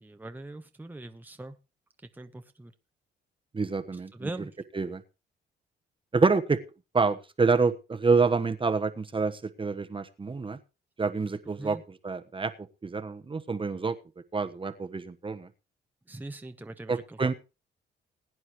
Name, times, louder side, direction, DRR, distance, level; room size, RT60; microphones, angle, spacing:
voice 1, 0.0-1.5 2.2-2.7 4.2-4.5 11.6-11.8 16.1-16.9, right 2 dB, 10° right, 6 dB, 1.1 m, -40 dB
voice 2, 3.5-5.0 6.1-6.6 6.9-10.6 11.0-14.0 14.3-15.5 16.9-17.3, right 4 dB, 25° right, 9 dB, 1.2 m, -27 dB
21.0 x 9.6 x 3.1 m, 0.29 s
cardioid pair, 90°, 20 cm